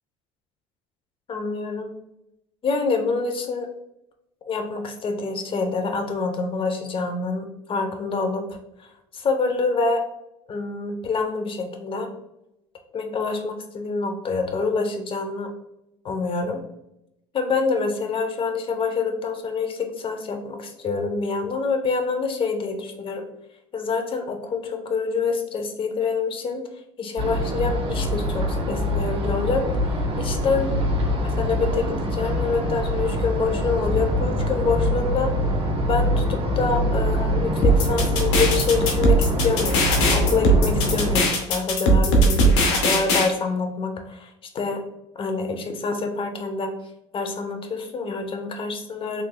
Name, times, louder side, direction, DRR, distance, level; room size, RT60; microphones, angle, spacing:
voice 1, 1.3-1.9 2.6-3.7 4.5-8.5 8.8-8.9 9.1-10.0 10.5-12.1 12.9-15.5 16.0-16.6 17.3-23.2 23.7-26.6 27.0-30.8 31.2-35.3 35.8-44.8 45.2-46.7 47.1-49.2, left 4 dB, 40° left, 5 dB, 0.7 m, -26 dB
sound 1, 27.2-41.2, equal, 40° right, 0.7 m, -24 dB
sound 2, 37.6-43.3, right 1 dB, 80° left, 0.7 m, -19 dB
3.4 x 3.1 x 2.2 m, 0.83 s
hypercardioid pair, 80°, 14 cm